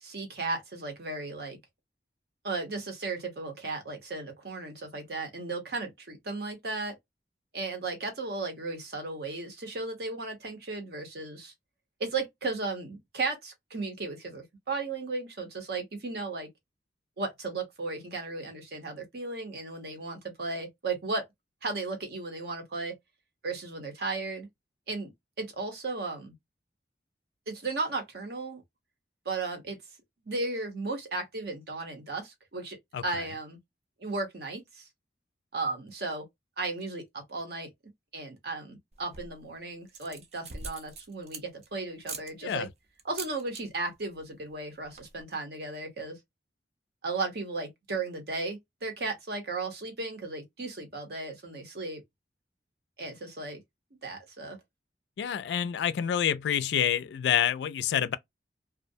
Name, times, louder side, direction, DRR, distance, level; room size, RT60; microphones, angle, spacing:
voice 1, 0.0-1.6 2.4-7.0 7.5-11.5 12.0-16.5 17.2-21.2 21.6-22.9 23.4-24.5 24.9-25.1 25.4-26.3 27.5-28.6 29.2-29.8 30.3-32.8 33.0-33.6 34.0-34.9 35.5-36.3 36.6-37.7 38.1-42.7 43.0-46.2 47.0-52.0 53.0-53.6 54.0-54.6, right 3 dB, 60° right, 0.8 m, -35 dB
sound 1, 38.9-39.4 39.9-41.7 42.0-42.3 43.0-43.6 43.9-44.2 44.5-44.6 44.8-45.2, right 5 dB, 35° right, 0.4 m, -42 dB
voice 2, 55.2-58.2, left 9 dB, 75° left, 0.3 m, -27 dB
2.4 x 2.0 x 2.6 m
head